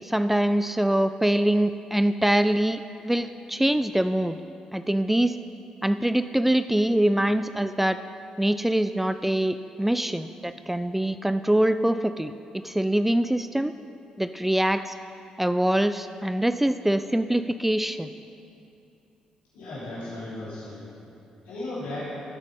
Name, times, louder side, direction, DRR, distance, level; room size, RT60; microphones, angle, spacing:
voice 1, 0.0-4.4 4.7-5.4 5.8-8.0 8.4-13.7 14.2-14.9 15.4-18.1, right 1 dB, 5° right, 11 dB, 0.4 m, -24 dB
voice 2, 19.5-20.8 21.4-22.1, left 2 dB, 75° left, -10 dB, 3.1 m, -35 dB
14.0 x 8.0 x 5.4 m, 2.7 s
hypercardioid pair, 45°, 3 cm